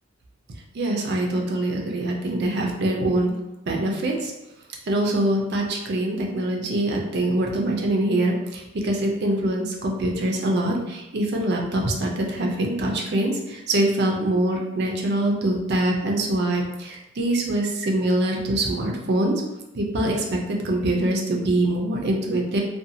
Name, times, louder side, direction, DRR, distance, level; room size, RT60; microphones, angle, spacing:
voice 1, 0.7-3.3 3.7-4.3 4.9-19.4 19.7-22.6, right 1 dB, 55° right, 1 dB, 0.5 m, -24 dB
2.7 x 2.3 x 2.6 m, 0.94 s
head